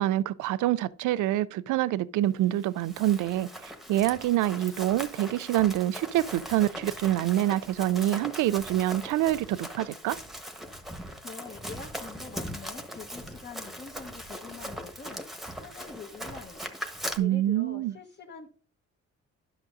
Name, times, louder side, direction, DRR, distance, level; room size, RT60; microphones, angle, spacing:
voice 1, 0.0-10.2 17.2-17.9, right 13 dB, 80° right, 0.4 m, -26 dB
Run, 2.6-17.2, equal, ahead, 1.2 m, -40 dB
voice 2, 10.9-16.6 17.2-18.5, left 5 dB, 35° left, 1.2 m, -45 dB
11.0 x 6.0 x 2.6 m
cardioid pair, 90°, 30 cm